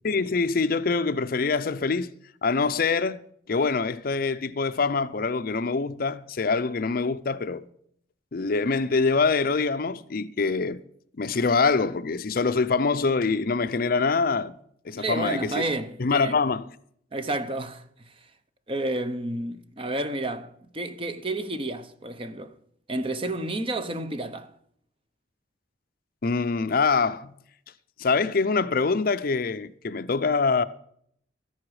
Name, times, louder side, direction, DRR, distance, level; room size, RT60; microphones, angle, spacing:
voice 1, 0.0-2.1 2.4-3.2 3.5-7.6 8.3-10.8 11.1-14.5 14.8-15.6 16.0-16.7 26.2-27.3 28.0-30.6, left 4 dB, 50° left, 0.5 m, -24 dB
voice 2, 15.0-16.4 17.1-18.1 18.7-22.5 22.9-24.5, right 2 dB, 30° right, 0.8 m, -31 dB
13.0 x 11.0 x 4.8 m
head